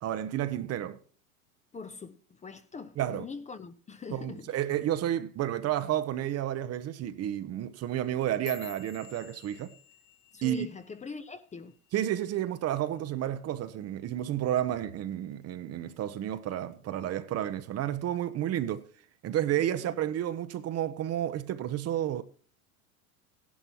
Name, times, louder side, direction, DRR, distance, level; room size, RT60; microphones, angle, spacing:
voice 1, 0.0-1.0 3.0-3.2 4.1-9.7 10.4-10.7 11.9-18.9 19.2-22.2, right 11 dB, 35° right, 0.9 m, -31 dB
voice 2, 1.7-4.6 10.3-11.7 19.6-20.0, left 5 dB, 15° left, 0.8 m, -43 dB
sound 1, 8.0-12.4 12.7-13.1 13.5-13.9 14.3-14.5 15.1-15.5 15.9-16.7 17.1-17.5 18.3-18.4, left 10 dB, 50° left, 2.1 m, -51 dB
15.5 x 11.0 x 2.9 m
hypercardioid pair, 95°, 43 cm